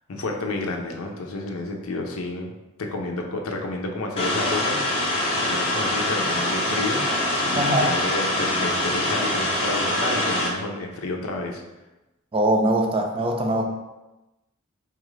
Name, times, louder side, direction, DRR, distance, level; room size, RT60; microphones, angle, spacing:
voice 1, 0.1-2.5 2.8-4.8 5.4-7.0 7.4-11.6, left 2 dB, 90° left, 2 dB, 0.6 m, -30 dB
sound 1, 4.2-10.5, left 1 dB, 30° left, 0.7 m, -24 dB
voice 2, 7.5-7.9 12.3-13.6, right 1 dB, 25° right, 3 dB, 0.4 m, -22 dB
4.6 x 2.4 x 3.1 m, 1.0 s
head